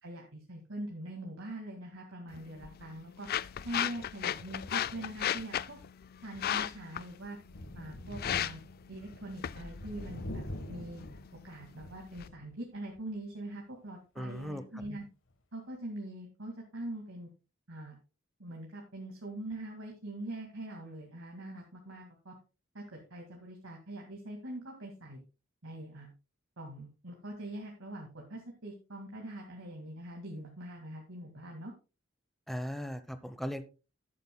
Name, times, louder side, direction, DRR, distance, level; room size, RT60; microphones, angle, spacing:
voice 1, 0.0-3.3 3.6-5.8 6.2-7.4 7.7-8.6 8.9-11.0 11.4-15.0 15.5-17.3 17.7-18.0 18.4-22.3 22.7-25.2 25.6-26.1 26.6-31.7, right 1 dB, 70° right, 0 dB, 2.1 m, -43 dB
sound 1, 2.3-12.3, left 10 dB, 50° left, 0.4 m, -37 dB
Thunder, 7.4-12.5 13.0-13.1 14.4-14.5, left 1 dB, 65° left, 1.4 m, -44 dB
voice 2, 14.2-14.8 32.5-33.6, equal, ahead, 10 dB, 0.9 m, -38 dB
13.0 x 11.0 x 2.3 m, 0.31 s
head